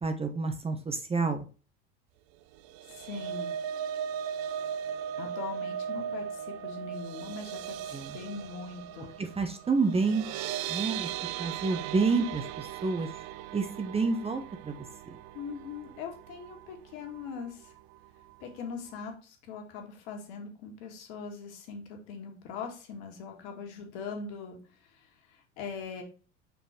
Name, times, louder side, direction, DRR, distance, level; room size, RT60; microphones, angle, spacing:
voice 1, 0.0-1.4 7.9-8.2 9.2-10.2 10.7-11.1 11.4-13.1 13.5-14.7, right 4 dB, 15° right, 6 dB, 0.9 m, -29 dB
sound 1, 2.6-16.8 17.1-17.4 17.7-17.8, right 9 dB, 60° right, 0.6 m, -38 dB
voice 2, 2.9-3.5 5.2-9.1 15.3-17.7 18.4-26.0, left 5 dB, 60° left, 3 dB, 2.0 m, -41 dB
5.3 x 4.4 x 5.0 m, 0.36 s
hypercardioid pair, 85°, 36 cm